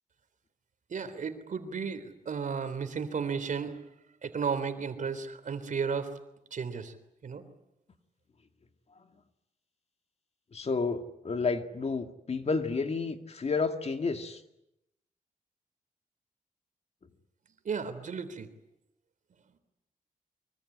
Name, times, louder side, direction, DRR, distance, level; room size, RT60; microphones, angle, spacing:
voice 1, 0.9-3.8 4.2-6.1 6.5-6.9 7.2-7.4 17.7-18.5, right 6 dB, 60° right, 10 dB, 3.5 m, -34 dB
voice 2, 10.5-14.4, left 4 dB, 45° left, 7 dB, 2.3 m, -31 dB
24.5 x 24.0 x 9.9 m, 0.85 s
cardioid pair, 85°, 15 cm